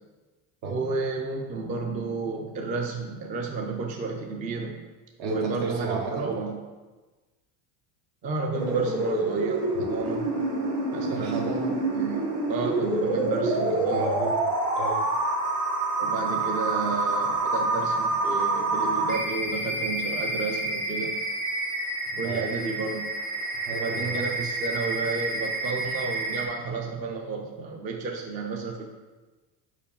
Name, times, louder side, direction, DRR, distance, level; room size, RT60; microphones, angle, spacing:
voice 1, 0.6-4.8 5.2-6.6 8.2-10.3 10.9-14.1 16.0-21.2 22.2-23.1 23.7-28.8, right 4 dB, 20° right, 2 dB, 0.3 m, -32 dB
voice 2, 5.2-6.3 11.1-11.8 13.7-15.1 22.2-22.5 23.7-24.2, right 4 dB, 65° right, 1 dB, 1.5 m, -33 dB
sound 1, 8.5-26.5, right 2 dB, 40° right, 1.4 m, -27 dB
4.9 x 4.6 x 5.3 m, 1.2 s
cardioid pair, 150°, 48 cm